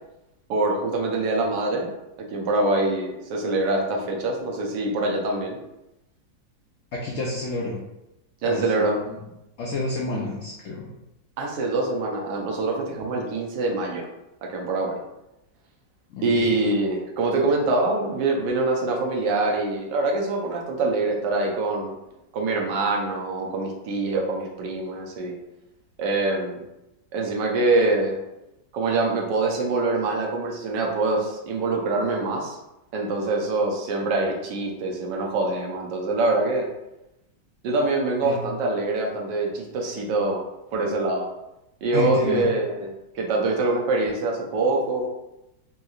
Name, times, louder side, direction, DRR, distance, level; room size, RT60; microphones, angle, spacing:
voice 1, 0.5-1.9 2.2-5.6 8.4-9.0 11.4-14.1 14.4-15.0 16.2-21.9 22.3-25.4 26.0-26.6 27.1-28.2 28.7-32.6 32.9-36.7 37.6-40.4 40.7-41.3 41.8-42.9 43.1-45.1, right 2 dB, 75° right, 0 dB, 1.3 m, -24 dB
voice 2, 6.9-7.8 8.4-8.8 9.1-9.2 9.6-10.9 16.1-16.5 38.2-38.4 41.9-42.5, left 2 dB, 80° left, -3 dB, 0.7 m, -29 dB
3.6 x 2.8 x 2.3 m, 0.91 s
omnidirectional pair, 1.9 m